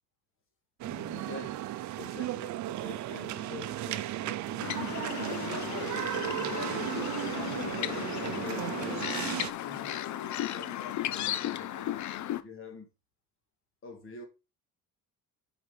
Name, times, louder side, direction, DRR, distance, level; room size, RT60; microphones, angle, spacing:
voice 1, 0.8-1.6 2.0-5.8 6.1-9.3 9.6-12.0 12.4-12.9 13.8-14.2, left 4 dB, 40° left, 2.1 m, -46 dB
sound 1, 0.8-9.5, right 14 dB, 60° right, 0.6 m, -35 dB
sound 2, 4.6-12.4, left 13 dB, 60° left, 0.7 m, -35 dB
7.6 x 5.1 x 5.2 m
cardioid pair, 165°, 33 cm